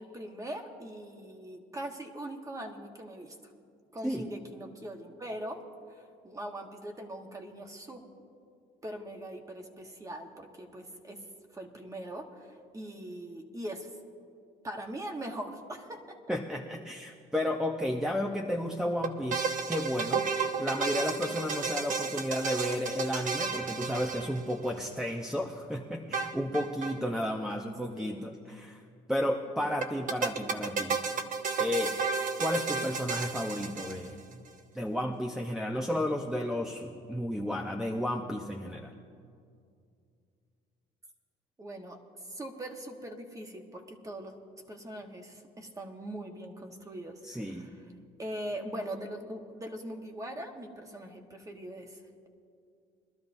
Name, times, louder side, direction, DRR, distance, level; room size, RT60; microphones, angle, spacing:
voice 1, 0.0-3.5 3.9-5.6 5.9-8.0 8.8-11.2 11.5-13.9 14.6-16.3 28.0-28.2 29.6-29.7 41.6-42.0 42.2-44.3 44.7-47.9 48.2-52.3, right 1 dB, 20° right, 3 dB, 1.4 m, -41 dB
voice 2, 16.3-20.3 20.6-28.8 29.1-31.0 31.6-31.9 32.4-34.2 34.7-38.9 47.3-47.7, left 1 dB, 5° right, 0 dB, 0.7 m, -32 dB
sound 1, 19.0-24.8 26.1-27.0 27.2-27.3 27.5-27.6 29.8-34.3, right 5 dB, 50° right, 0.9 m, -32 dB
22.5 x 12.5 x 2.7 m, 2.4 s
cardioid pair, 110°, 17 cm